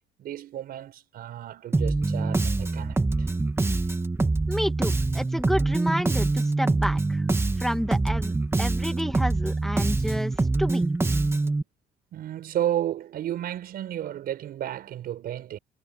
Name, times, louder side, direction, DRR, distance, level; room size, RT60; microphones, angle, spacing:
voice 1, 0.2-3.3 11.4-11.6 12.1-15.6, right 11 dB, 65° right, 5.2 m, -32 dB
Bass guitar, 1.7-11.6, right 3 dB, 15° right, 2.5 m, -25 dB
voice 2, 4.5-7.3 7.6-10.8, equal, ahead, 1.8 m, -30 dB
cardioid pair, 110°, 17 cm